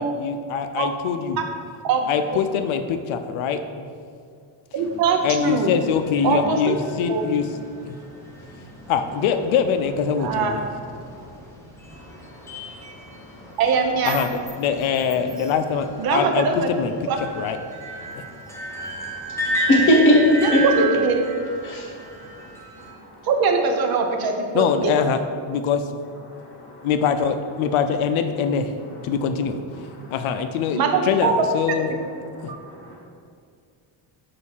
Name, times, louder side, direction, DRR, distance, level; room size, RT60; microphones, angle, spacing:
voice 1, 0.0-1.4 2.1-3.9 5.2-7.5 7.8-8.0 8.9-10.6 14.0-16.9 17.4-17.6 24.5-25.2 25.5-25.8 26.8-28.7 29.0-29.6 30.1-30.8 31.1-31.9, left 7 dB, 75° left, 8 dB, 0.6 m, -23 dB
voice 2, 1.8-2.4 4.7-5.7 6.2-6.8 7.1-7.2 10.2-10.6 13.6-14.2 16.0-16.7 17.1-17.2 20.4-21.2 23.2-25.0 30.7-31.3 32.5-32.6, right 5 dB, 45° right, 4 dB, 0.7 m, -22 dB
sound 1, 4.8-22.9, right 1 dB, 5° left, 0.6 m, -33 dB
voice 3, 11.9-12.6 13.0-13.4 18.2-20.6 21.6-21.9 22.4-22.5 22.8-23.1 26.4-26.9 30.0-30.1 32.4-33.0, left 1 dB, 25° left, -5 dB, 1.0 m, -23 dB
6.3 x 2.7 x 5.5 m, 2.3 s
cardioid pair, 175°, 50 cm